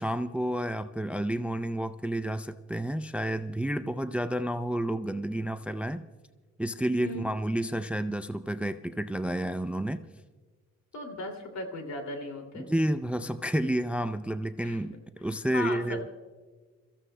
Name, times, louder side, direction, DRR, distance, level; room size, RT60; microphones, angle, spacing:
voice 1, 0.0-6.0 6.6-10.0 12.6-16.1, right 1 dB, 5° right, 11 dB, 0.4 m, -30 dB
voice 2, 10.9-12.7 14.6-14.8 15.5-16.1, left 2 dB, 65° left, 5 dB, 2.6 m, -37 dB
28.5 x 15.0 x 2.2 m, 1.4 s
cardioid pair, 90°, 30 cm